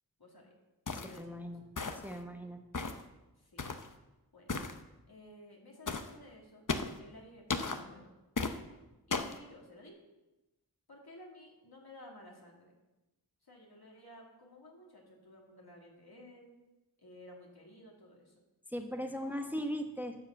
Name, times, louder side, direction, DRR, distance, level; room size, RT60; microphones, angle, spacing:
voice 1, 0.2-0.5 0.8-1.5 3.4-3.6 4.3-4.6 5.1-6.7 7.0-8.1 9.1-10.0 10.9-12.7 13.4-16.6 17.0-18.3 19.1-19.5, left 1 dB, 70° left, -1 dB, 2.5 m, -54 dB
sound 1, 0.9-1.2 1.8-2.2 2.7-3.0 3.6-3.9 4.5-4.8 5.9-6.1 6.7-7.0 7.5-7.8 8.4-8.6 9.1-9.4, left 4 dB, 50° left, 0.8 m, -35 dB
voice 2, 1.0-1.6 2.0-2.6 18.7-20.2, equal, 5° right, 5 dB, 1.0 m, -38 dB
12.0 x 4.8 x 7.6 m, 1.0 s
wide cardioid pair, 45°, 39 cm